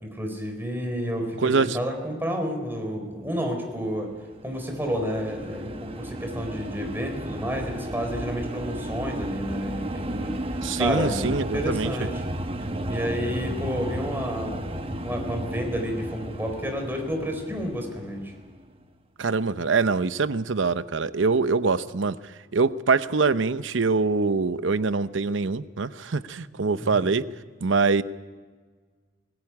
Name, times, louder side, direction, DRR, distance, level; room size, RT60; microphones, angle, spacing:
voice 1, 0.0-4.1 4.4-10.4 10.8-12.3 12.9-18.3 26.8-27.0, equal, 10° right, 3 dB, 4.3 m, -30 dB
voice 2, 1.4-1.8 10.6-11.9 19.2-22.2 22.5-27.3 27.6-28.0, right 4 dB, 85° right, 14 dB, 0.7 m, -24 dB
sound 1, 4.1-18.6, right 1 dB, 30° right, 1.0 m, -34 dB
20.0 x 17.0 x 9.8 m, 1.5 s
head